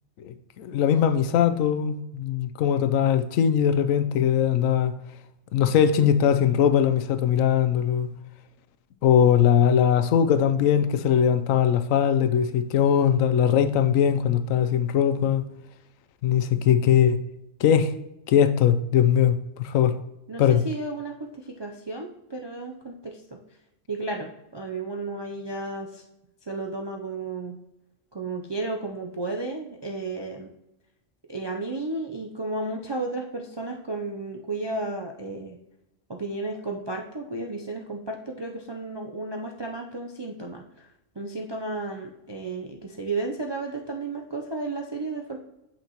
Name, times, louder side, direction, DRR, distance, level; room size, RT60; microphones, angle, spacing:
voice 1, 0.2-4.9 5.5-8.1 9.0-15.4 16.2-17.2 17.6-17.9 18.3-20.0 20.4-20.6, left 8 dB, 85° left, 1.0 m, -21 dB
voice 2, 20.3-23.2 23.9-26.0 26.4-27.6 28.1-30.5 31.3-35.6 36.1-40.9 41.2-45.4, right 2 dB, 45° right, 0.3 m, -33 dB
8.1 x 5.9 x 2.9 m
omnidirectional pair, 1.3 m